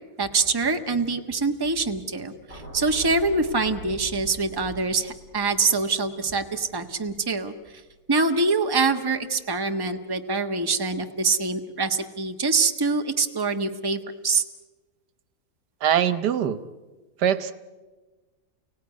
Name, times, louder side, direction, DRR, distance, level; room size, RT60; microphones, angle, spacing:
voice 1, 0.2-7.5 8.1-14.4, right 4 dB, 15° right, 5 dB, 1.2 m, -25 dB
sound 1, 2.5-8.8 9.1-9.4, right 1 dB, 50° left, 8.5 m, -45 dB
voice 2, 15.8-16.6 17.2-17.5, right 9 dB, 85° right, 13 dB, 1.7 m, -22 dB
30.0 x 18.0 x 9.7 m, 1.3 s
omnidirectional pair, 1.7 m